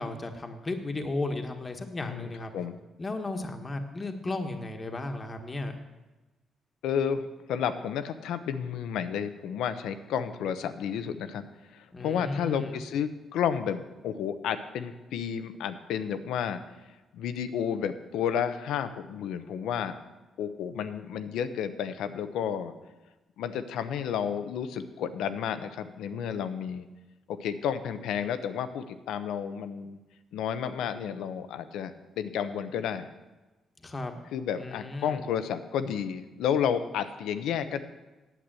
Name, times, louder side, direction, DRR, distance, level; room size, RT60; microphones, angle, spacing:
voice 1, 0.0-2.5 3.0-5.8 11.9-12.8 33.8-34.2 34.6-35.3, left 2 dB, 30° left, 5 dB, 1.4 m, -34 dB
voice 2, 2.0-2.7 6.8-11.4 11.7-16.6 17.1-20.0 20.4-22.7 23.4-26.8 27.3-30.0 30.3-33.1 34.3-37.8, left 8 dB, 85° left, 11 dB, 0.8 m, -31 dB
9.1 x 8.0 x 7.6 m, 1.1 s
cardioid pair, 75°, 0 cm